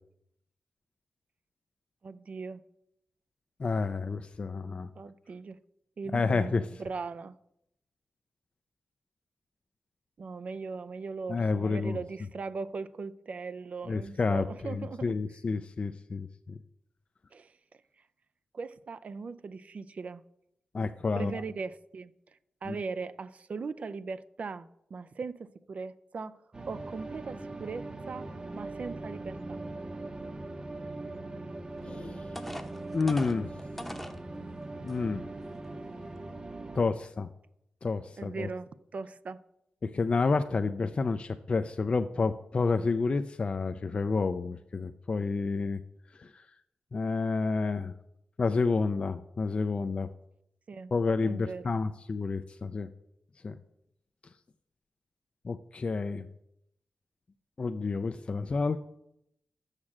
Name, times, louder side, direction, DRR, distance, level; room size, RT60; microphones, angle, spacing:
voice 1, 2.0-2.6 5.0-5.6 6.0-6.5 6.8-7.3 10.2-15.1 17.3-17.5 18.5-20.2 21.2-22.1 22.6-26.4 26.7-29.6 38.2-39.4 50.7-50.9 51.2-51.7, right 4 dB, 55° right, 0.4 m, -39 dB
voice 2, 3.6-4.9 6.1-6.6 11.3-12.0 13.9-16.6 20.7-21.4 22.7-22.8 31.8-32.3 32.9-33.5 34.8-35.2 36.7-37.3 37.8-38.5 39.8-45.8 46.2-46.5 46.9-47.9 48.4-50.1 50.9-52.9 53.4-53.6 55.4-56.3 57.6-58.8, left 4 dB, 40° left, 0.4 m, -30 dB
sound 1, 26.5-36.8, right 2 dB, 30° right, 0.8 m, -41 dB
sound 2, 31.8-31.9 32.4-34.2 34.9-35.0 35.5-35.7, left 1 dB, 5° left, 0.8 m, -41 dB
6.6 x 6.1 x 7.2 m
cardioid pair, 70°, 3 cm